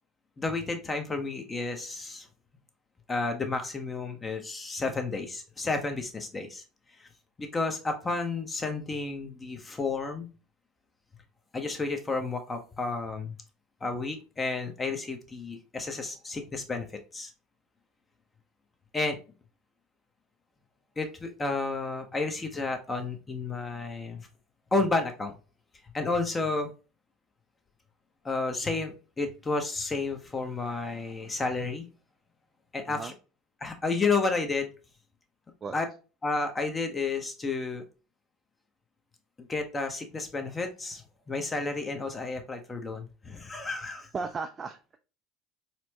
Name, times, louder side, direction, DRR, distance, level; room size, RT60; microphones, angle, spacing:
voice 1, 0.4-2.3 3.1-6.6 7.4-10.3 11.5-13.3 13.8-17.3 18.9-19.2 21.0-24.3 24.7-25.3 25.9-26.7 28.2-31.8 32.7-33.1 33.6-34.7 35.7-35.9 36.2-37.8 39.4-41.0 41.3-44.1, left 3 dB, 20° left, 5 dB, 0.8 m, -31 dB
voice 2, 44.1-45.0, right 4 dB, 30° right, 6 dB, 0.3 m, -35 dB
4.3 x 2.1 x 2.8 m, 0.33 s
hypercardioid pair, 70°, 0 cm